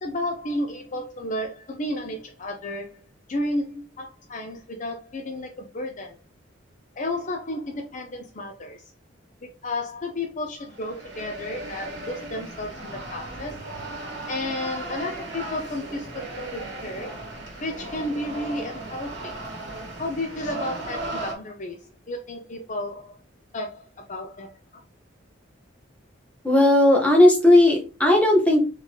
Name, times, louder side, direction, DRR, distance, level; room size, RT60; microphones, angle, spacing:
voice 1, 0.0-3.0 3.3-6.2 7.0-8.9 9.4-13.6 14.3-17.1 17.6-19.3 20.0-23.2 23.5-24.8, left 1 dB, 40° left, 4 dB, 0.5 m, -32 dB
sound 1, 10.7-21.3, right 2 dB, 60° right, 1.4 m, -36 dB
voice 2, 26.4-28.7, left 1 dB, 5° left, -1 dB, 1.2 m, -16 dB
4.0 x 3.9 x 3.1 m, 0.32 s
head